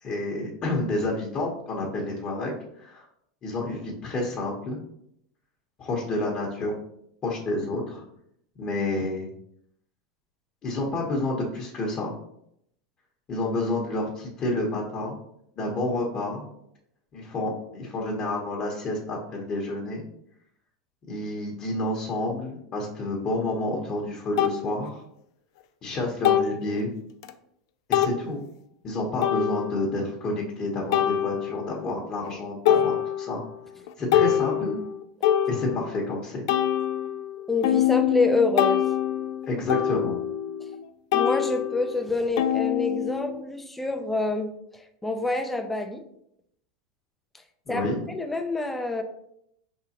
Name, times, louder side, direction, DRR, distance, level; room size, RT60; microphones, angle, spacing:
voice 1, 0.0-3.0 3.4-4.8 5.8-6.7 7.2-8.0 8.6-9.3 10.6-12.1 13.3-15.2 15.6-16.5 17.1-20.0 21.1-25.0 25.8-26.9 27.9-28.4 28.8-33.4 34.0-34.8 35.5-36.4 39.5-40.2 47.7-48.0, left 2 dB, 35° left, -2 dB, 1.1 m, -29 dB
sound 1, 23.5-23.6 24.4-24.6 26.2-26.7 27.2-27.3 27.9-28.2 29.2-29.9 30.9-31.8 32.2-32.4 32.7-33.5 33.9-36.0 36.5-40.8 41.1-43.4, left 10 dB, 65° left, 0.4 m, -25 dB
voice 2, 37.5-38.8 41.1-46.0 47.7-49.0, left 2 dB, 5° left, 6 dB, 0.6 m, -27 dB
4.7 x 3.7 x 2.9 m, 0.74 s
hypercardioid pair, 110°, 3 cm